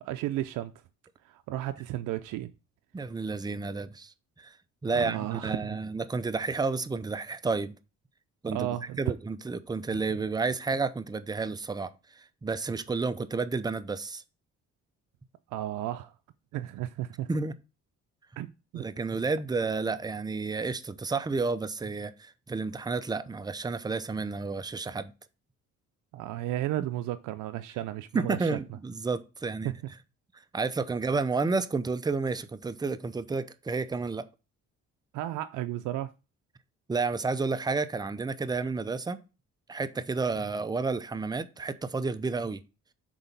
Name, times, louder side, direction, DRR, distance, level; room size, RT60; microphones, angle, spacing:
voice 1, 0.0-0.7 1.2-2.5 4.9-5.8 8.5-9.1 9.9-10.0 15.5-16.1 16.5-17.3 18.4-18.8 26.1-28.5 29.6-29.8 35.1-36.1, right 14 dB, 85° right, 0.5 m, -33 dB
voice 2, 2.9-4.6 4.8-7.8 8.4-8.7 9.0-14.2 17.3-17.5 18.7-25.1 28.1-29.7 30.5-34.2 36.9-39.2 39.7-42.6, right 4 dB, 15° right, 0.6 m, -31 dB
6.2 x 4.0 x 5.4 m
cardioid pair, 90°, 30 cm